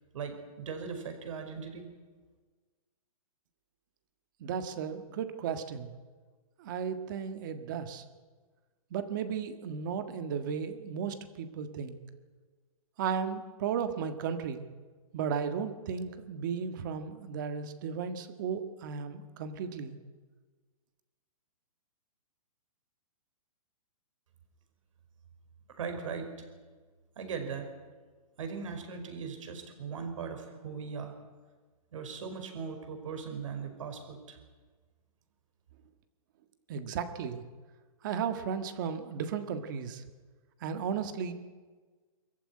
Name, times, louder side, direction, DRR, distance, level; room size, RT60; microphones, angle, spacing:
voice 1, 0.1-1.9 25.8-26.3 27.2-27.7 28.4-31.1 31.9-34.4, right 5 dB, 55° right, 6 dB, 5.2 m, -39 dB
voice 2, 4.4-5.9 6.6-8.0 8.9-12.0 13.0-14.6 15.1-20.0 36.7-37.4 38.0-40.0 40.6-41.3, right 7 dB, 30° right, 9 dB, 1.6 m, -35 dB
24.5 x 14.5 x 9.9 m, 1.4 s
hypercardioid pair, 170°, 19 cm